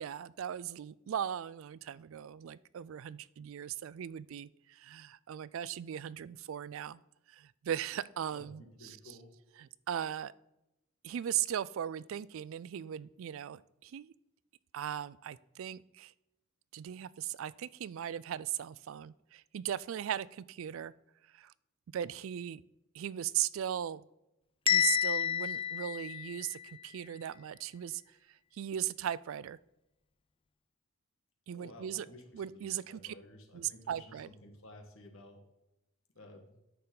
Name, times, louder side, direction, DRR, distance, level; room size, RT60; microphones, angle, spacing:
voice 1, 0.0-7.0 7.3-9.1 9.6-10.3 11.0-14.1 14.7-16.1 16.7-20.9 21.3-21.5 21.9-22.6 22.9-24.0 24.7-28.0 28.3-29.6 31.5-32.1 32.3-33.1 33.5-34.3, right 10 dB, 65° right, 19 dB, 0.3 m, -38 dB
voice 2, 8.3-9.3 31.5-35.4 36.1-36.5, left 1 dB, 65° left, 3 dB, 1.6 m, -54 dB
Bell, 24.7-26.7, left 9 dB, 25° left, 0.4 m, -30 dB
9.2 x 6.7 x 3.9 m, 0.88 s
head